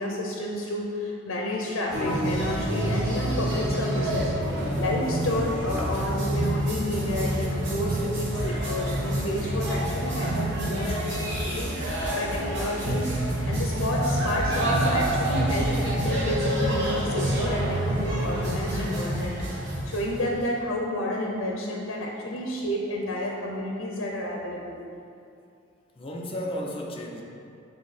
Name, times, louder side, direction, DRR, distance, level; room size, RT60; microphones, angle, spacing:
voice 1, 0.0-4.3 4.8-13.1 13.5-19.3 19.9-24.8, left 1 dB, 80° left, -1 dB, 0.6 m, -30 dB
sound 1, 1.9-20.4, right 1 dB, 65° right, 1.3 m, -27 dB
voice 2, 5.8-6.1 8.5-8.8 10.9-11.2 12.6-12.7 26.0-27.2, equal, 25° left, -1 dB, 0.6 m, -36 dB
6.9 x 3.5 x 4.2 m, 2.5 s
head